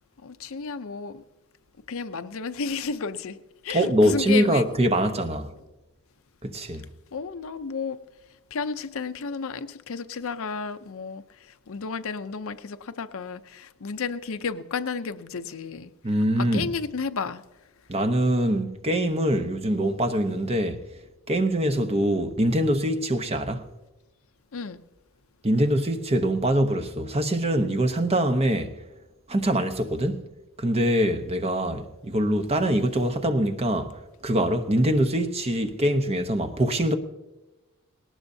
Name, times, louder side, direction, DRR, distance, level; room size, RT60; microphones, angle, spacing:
voice 1, 0.2-1.2 1.9-3.4 3.6-4.7 7.1-8.0 8.5-15.9 16.4-17.4 24.5-24.8, left 5 dB, 65° left, 0.6 m, -32 dB
voice 2, 3.7-5.5 6.4-6.8 16.0-16.7 17.9-20.8 21.3-23.6 25.4-28.7 29.3-30.2 30.6-36.9, right 1 dB, 30° right, 0.9 m, -24 dB
19.0 x 18.5 x 2.7 m
head